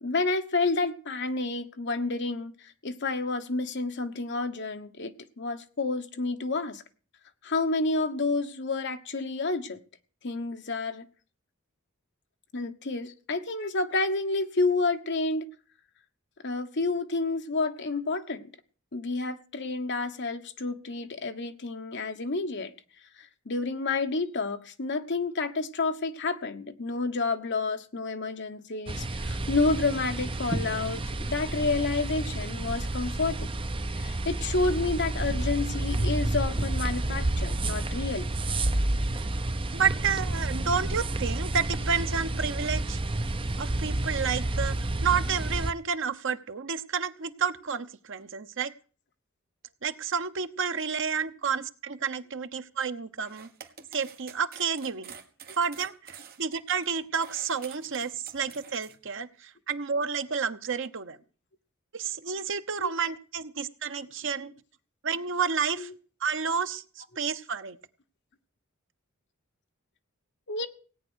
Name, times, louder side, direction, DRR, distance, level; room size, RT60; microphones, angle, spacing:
voice 1, 0.0-6.8 7.4-9.8 10.2-11.1 12.5-15.5 16.4-18.5 18.9-22.7 23.2-33.5 33.9-38.3 62.8-62.9 65.8-65.9 70.5-70.7, left 3 dB, 55° left, 1.2 m, -30 dB
sound 1, 28.9-45.7, right 2 dB, 25° right, 0.7 m, -30 dB
voice 2, 39.7-43.0 43.6-48.7 49.8-53.5 53.9-55.1 55.6-61.2 61.9-64.5 65.0-65.9 66.2-67.8, right 6 dB, 60° right, 1.0 m, -30 dB
sound 2, 53.2-58.9, right 7 dB, 45° right, 1.7 m, -48 dB
17.5 x 9.1 x 6.3 m
head